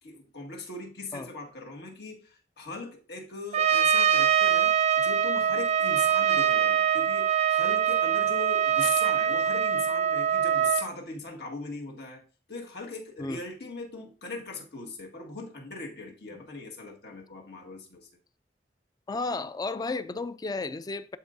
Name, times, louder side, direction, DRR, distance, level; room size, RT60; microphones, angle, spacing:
voice 1, 0.0-12.2 12.5-18.1, left 3 dB, 65° left, 1.7 m, -39 dB
Trumpet, 3.5-10.9, right 9 dB, 40° right, 0.5 m, -23 dB
voice 2, 19.1-21.2, left 3 dB, 20° left, 0.3 m, -33 dB
11.5 x 4.6 x 2.6 m
head